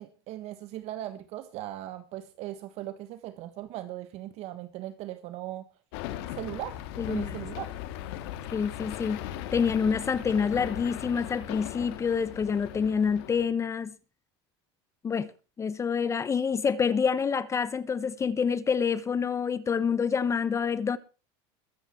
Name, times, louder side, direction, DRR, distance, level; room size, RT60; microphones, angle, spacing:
voice 1, 0.0-5.6 6.3-6.8 7.1-7.7, right 14 dB, 55° right, 1.4 m, -38 dB
sound 1, 5.9-13.5, left 12 dB, 75° left, 2.1 m, -38 dB
voice 2, 7.0-7.3 8.5-9.2 9.5-13.9 15.0-15.3 15.6-21.0, left 6 dB, 20° left, 0.9 m, -27 dB
22.0 x 8.0 x 4.4 m
supercardioid pair, 120°, 13 cm